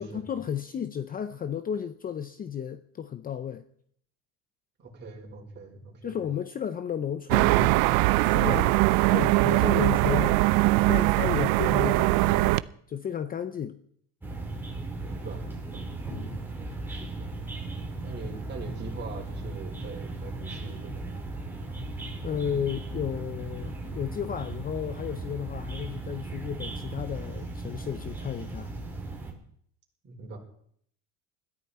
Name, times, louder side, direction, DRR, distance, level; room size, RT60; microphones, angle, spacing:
voice 1, 0.0-3.6 6.0-7.8 8.2-10.4 10.9-12.6 12.9-13.8 16.1-16.4 22.2-28.7, left 8 dB, 25° left, 0.7 m, -33 dB
voice 2, 4.8-6.2 15.0-15.9 16.9-17.5 18.0-21.2 30.0-30.4, right 3 dB, 30° right, 4.7 m, -42 dB
sound 1, 7.3-12.6, right 20 dB, 75° right, 0.7 m, -21 dB
sound 2, 14.2-29.3, right 2 dB, 5° right, 3.8 m, -37 dB
21.0 x 14.0 x 4.3 m
cardioid pair, 145°, 35 cm